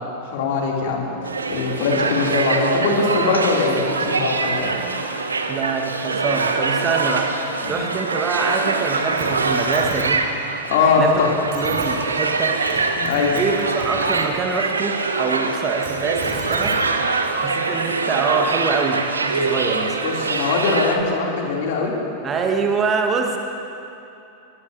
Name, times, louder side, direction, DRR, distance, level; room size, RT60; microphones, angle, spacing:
voice 1, 0.2-1.1 1.5-4.7 7.6-7.8 10.7-11.3 13.0-13.4 20.0-21.9, left 4 dB, 55° left, -1 dB, 2.8 m, -21 dB
sound 1, 1.2-21.0, right 3 dB, 75° right, 0.9 m, -24 dB
voice 2, 5.5-7.4 7.7-10.2 11.0-11.1 11.5-12.6 13.3-16.8 17.4-20.0 22.2-23.4, right 5 dB, 25° right, 3 dB, 1.4 m, -24 dB
sound 2, 9.2-9.3 9.5-10.0 11.1-11.2 11.5-11.9 12.5-12.8 13.1-14.2 15.6-16.8 17.8-17.9, right 4 dB, 45° right, 3.6 m, -34 dB
21.5 x 20.5 x 2.7 m, 2.8 s
figure-of-eight pair, 90°, 0 cm